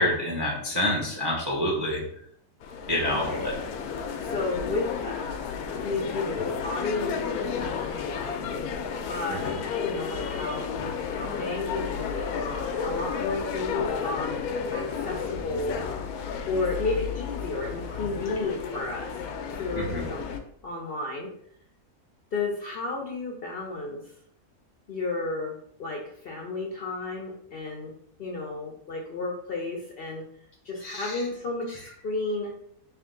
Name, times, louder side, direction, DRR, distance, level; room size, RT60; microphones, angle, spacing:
voice 1, 0.0-2.0 2.9-3.5 9.3-9.4 19.7-20.0 30.8-31.2, left 1 dB, 35° right, -3 dB, 0.4 m, -27 dB
sound 1, 2.6-20.4, left 6 dB, 90° left, 1.1 m, -32 dB
voice 2, 3.1-3.5 4.2-5.4 5.8-8.7 9.0-10.6 11.1-14.3 14.7-15.8 16.5-19.2 19.5-20.3 20.6-21.3 22.3-24.0 24.9-27.9 28.2-30.2 30.6-32.5, left 3 dB, 60° left, 0 dB, 0.6 m, -32 dB
3.4 x 2.9 x 3.7 m, 0.67 s
omnidirectional pair, 1.5 m